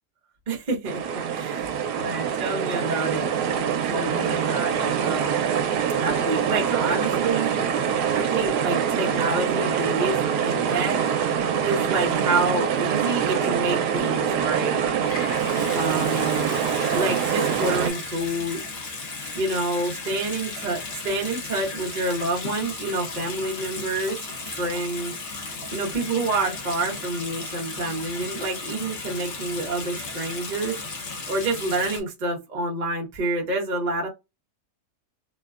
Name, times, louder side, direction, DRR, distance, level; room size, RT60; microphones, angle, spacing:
voice 1, 0.5-1.0 1.3-3.3 3.9-5.6 6.0-7.5 8.1-11.0 11.6-14.8 15.7-16.6 16.9-18.6 19.3-24.2 24.6-25.2 25.7-30.8 31.3-34.1, right 2 dB, 35° right, 0.8 m, -28 dB
sound 1, 0.8-17.9, right 7 dB, 85° right, 1.2 m, -24 dB
Water tap faucet / Sink (filling or washing) / Bathtub (filling or washing), 15.0-32.0, left 3 dB, 50° left, 0.8 m, -35 dB
3.1 x 2.2 x 2.3 m
omnidirectional pair, 1.7 m